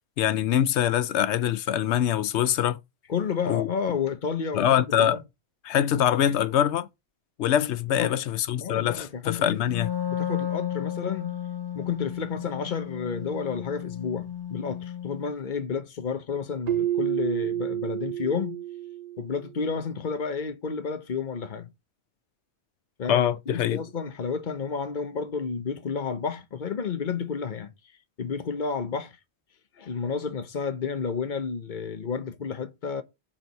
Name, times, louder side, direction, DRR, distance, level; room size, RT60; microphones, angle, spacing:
voice 1, 0.2-2.8 3.5-3.7 4.5-5.2 5.6-6.9 7.4-9.9 23.1-23.8, left 10 dB, 90° left, 0.9 m, -24 dB
voice 2, 3.1-4.7 5.0-5.2 7.9-8.1 8.6-9.7 10.1-11.4 11.7-18.6 19.2-21.7 23.0-27.7 28.2-29.2 29.8-33.0, left 6 dB, 50° left, 1.1 m, -31 dB
Wind instrument woodwind instrument, 9.6-15.3, left 9 dB, 20° left, 1.1 m, -33 dB
Keyboard (musical), 16.7-19.5, right 12 dB, 45° right, 0.6 m, -29 dB
7.6 x 4.6 x 5.3 m
omnidirectional pair, 1.1 m